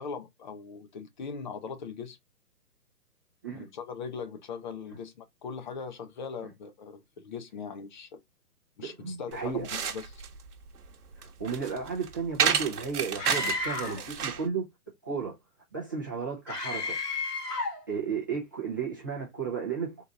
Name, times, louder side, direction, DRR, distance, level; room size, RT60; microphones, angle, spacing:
voice 1, 0.0-2.2 3.5-8.2 8.8-10.2, left 5 dB, 30° left, 0.7 m, -40 dB
voice 2, 8.8-9.7 11.2-14.7 15.0-15.4 15.7-17.0 17.9-20.0, right 6 dB, 15° right, 0.5 m, -34 dB
sound 1, 9.3-14.5, right 7 dB, 70° right, 1.1 m, -31 dB
Screaming, 13.2-14.1 16.5-17.8, left 3 dB, 90° left, 1.8 m, -32 dB
3.8 x 2.8 x 3.5 m
hypercardioid pair, 150°, 47 cm